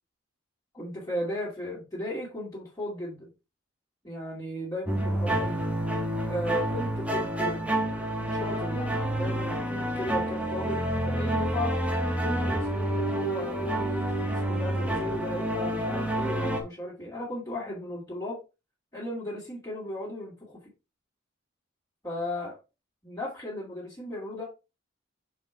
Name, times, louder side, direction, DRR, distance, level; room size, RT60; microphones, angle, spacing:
voice 1, 0.7-3.3 4.0-5.6 6.3-11.7 12.2-18.4 18.9-20.6 22.0-22.5 23.0-24.4, left 1 dB, 15° left, -6 dB, 2.5 m, -36 dB
sound 1, 4.9-16.6, right 1 dB, 5° right, 1.2 m, -28 dB
6.6 x 5.1 x 3.4 m, 0.28 s
head